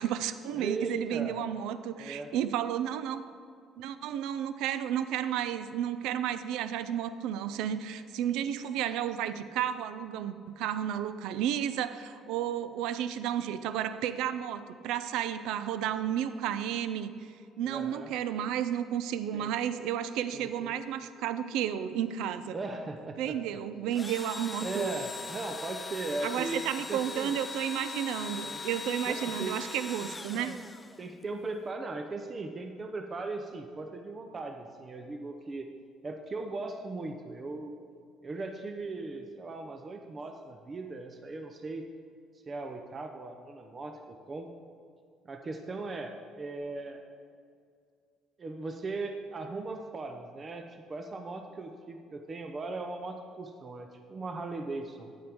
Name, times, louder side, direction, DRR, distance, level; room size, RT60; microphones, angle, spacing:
voice 1, 0.0-3.2 3.8-17.1 17.6-22.6 23.2-25.0 26.2-30.6, right 10 dB, 80° right, 12 dB, 0.4 m, -32 dB
voice 2, 0.5-1.4 2.0-2.3 17.6-18.1 19.3-19.5 20.3-20.7 22.5-23.6 24.6-27.3 28.4-28.6 29.1-29.6 30.0-30.6 31.0-35.7 36.0-37.7 38.2-41.9 42.5-44.5 45.2-47.0 48.4-55.1, right 3 dB, 35° right, 5 dB, 0.6 m, -38 dB
Engine / Drill, 23.9-31.2, left 4 dB, 20° left, 0.4 m, -40 dB
9.7 x 8.5 x 3.6 m, 2.3 s
supercardioid pair, 80°, 0 cm